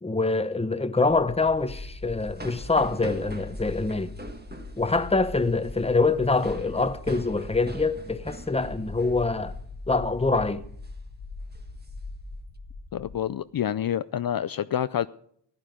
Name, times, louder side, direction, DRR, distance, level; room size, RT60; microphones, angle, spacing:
voice 1, 0.0-4.1 4.8-9.5 9.9-10.6, left 3 dB, 15° left, 0.8 m, -25 dB
sound 1, 1.1-13.2, left 3 dB, 90° left, 1.2 m, -41 dB
sound 2, 1.6-9.7 9.9-10.2 10.6-10.9 11.4-12.5, right 2 dB, 25° right, 1.5 m, -43 dB
voice 2, 12.9-15.1, left 10 dB, 60° left, 0.5 m, -28 dB
14.5 x 11.0 x 5.1 m
wide cardioid pair, 80°, 41 cm